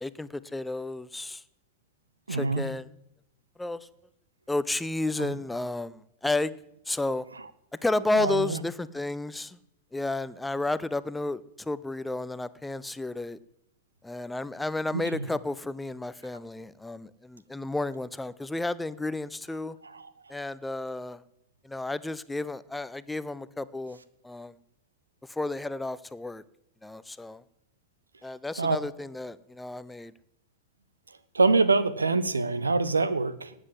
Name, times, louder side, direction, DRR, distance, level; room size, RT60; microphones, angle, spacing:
voice 1, 0.0-1.4 2.3-2.9 3.6-3.8 4.5-6.5 6.9-7.2 7.8-9.6 9.9-13.4 14.0-19.8 20.3-21.2 21.6-24.0 24.2-24.5 25.3-26.4 26.8-27.4 28.2-30.1, left 2 dB, 5° left, 16 dB, 0.6 m, -32 dB
voice 2, 2.3-2.7 5.2-5.4 8.1-8.6 14.9-15.3 19.8-20.1 28.6-28.8 31.3-33.5, right 3 dB, 75° right, 16 dB, 0.9 m, -25 dB
19.0 x 8.1 x 7.6 m, 0.78 s
figure-of-eight pair, 90°, 0 cm